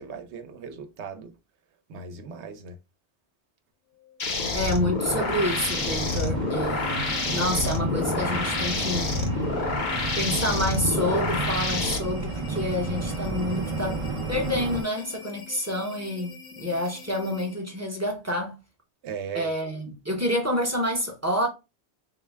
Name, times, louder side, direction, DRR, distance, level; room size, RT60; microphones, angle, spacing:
voice 1, 0.0-1.3 1.9-2.8 19.0-19.5, right 6 dB, 85° right, 1.0 m, -37 dB
sound 1, 3.9-17.8, left 8 dB, 85° left, 1.4 m, -44 dB
sound 2, 4.2-12.0, left 3 dB, 50° left, 0.8 m, -28 dB
voice 2, 4.5-9.1 10.2-18.6 19.3-21.5, left 1 dB, 15° right, 0.8 m, -28 dB
sound 3, 5.0-14.8, right 3 dB, 45° right, 0.4 m, -32 dB
3.8 x 2.2 x 3.3 m
omnidirectional pair, 1.1 m